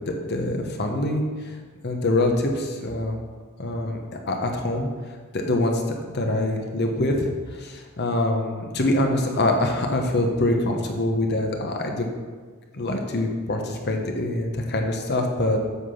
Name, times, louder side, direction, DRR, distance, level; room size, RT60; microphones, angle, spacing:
voice 1, 0.0-1.2 1.8-3.2 3.6-4.0 4.3-4.9 5.3-7.3 7.6-12.1 12.7-15.6, left 1 dB, 50° left, 2 dB, 1.2 m, -24 dB
8.3 x 6.0 x 5.8 m, 1.5 s
head